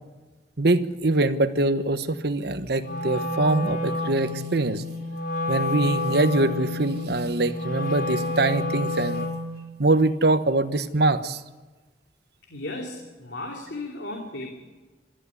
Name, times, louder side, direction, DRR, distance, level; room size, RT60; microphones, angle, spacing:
voice 1, 0.6-4.8 5.5-9.3 9.8-11.4, right 2 dB, 65° right, 12 dB, 1.2 m, -23 dB
Wind instrument woodwind instrument, 2.8-9.5, left 2 dB, 55° left, 5.2 m, -29 dB
voice 2, 12.5-14.5, left 2 dB, 75° left, 2 dB, 2.7 m, -35 dB
22.5 x 13.5 x 9.6 m, 1.3 s
head